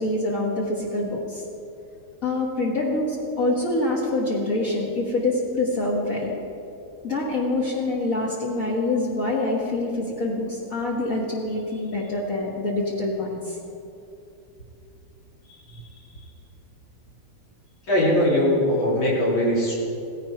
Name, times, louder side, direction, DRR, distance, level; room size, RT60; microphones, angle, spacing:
voice 1, 0.0-1.4 2.2-6.3 7.0-13.6 15.5-15.9, left 2 dB, 45° left, -4 dB, 2.2 m, -26 dB
voice 2, 17.9-19.7, left 1 dB, 90° left, -6 dB, 4.3 m, -20 dB
17.5 x 16.0 x 4.6 m, 2.8 s
omnidirectional pair, 2.1 m